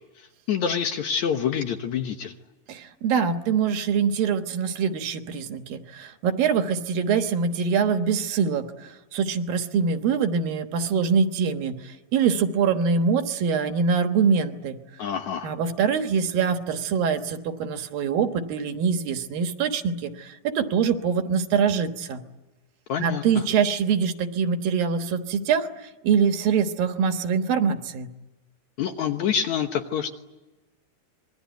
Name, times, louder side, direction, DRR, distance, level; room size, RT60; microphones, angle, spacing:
voice 1, 0.2-2.4 15.0-15.5 22.9-23.4 28.8-30.1, left 8 dB, 65° left, 6 dB, 2.2 m, -27 dB
voice 2, 2.7-8.7 9.1-14.8 15.4-22.2 23.0-28.1, right 6 dB, 75° right, 7 dB, 3.0 m, -24 dB
26.5 x 22.0 x 9.3 m, 1.1 s
omnidirectional pair, 4.3 m